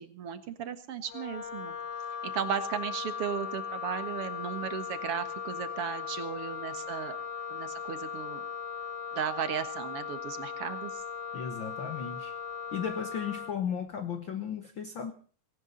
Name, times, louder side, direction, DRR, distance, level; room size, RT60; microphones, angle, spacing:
voice 1, 0.0-1.8 2.2-7.2 7.5-8.4 9.1-11.0, right 8 dB, 50° right, 10 dB, 2.0 m, -35 dB
Wind instrument woodwind instrument, 1.1-13.6, left 7 dB, 50° left, 3.6 m, -38 dB
voice 2, 11.3-12.4 12.7-15.1, left 7 dB, 75° left, 9 dB, 1.1 m, -35 dB
19.0 x 18.5 x 4.0 m, 0.41 s
omnidirectional pair, 3.9 m